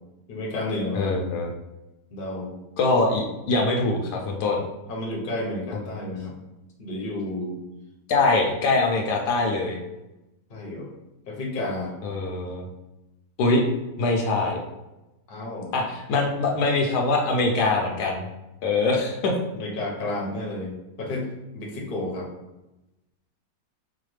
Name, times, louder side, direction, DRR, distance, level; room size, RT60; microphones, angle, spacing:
voice 1, 0.3-1.2 2.1-2.5 4.9-6.3 6.8-7.6 10.5-10.9 11.2-11.9 15.3-15.7 19.5-22.3, left 1 dB, 45° left, -2 dB, 0.8 m, -31 dB
voice 2, 0.9-1.5 2.8-4.6 6.0-6.1 8.1-9.8 12.0-12.7 13.4-13.6 14.0-14.6 15.7-18.3 18.6-19.3, left 3 dB, 75° left, 1 dB, 1.1 m, -23 dB
4.8 x 2.2 x 3.1 m, 0.97 s
omnidirectional pair, 1.8 m